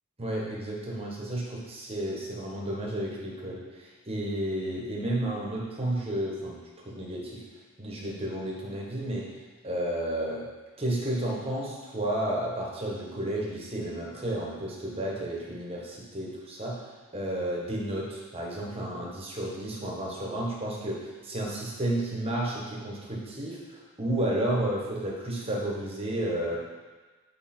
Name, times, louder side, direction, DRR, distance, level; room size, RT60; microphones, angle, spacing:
voice 1, 0.2-6.6 6.8-7.4 7.8-9.3 9.6-10.5 10.8-16.8 17.1-26.6, right 1 dB, 25° right, -3 dB, 1.3 m, -32 dB
7.5 x 4.9 x 4.4 m, 1.3 s
head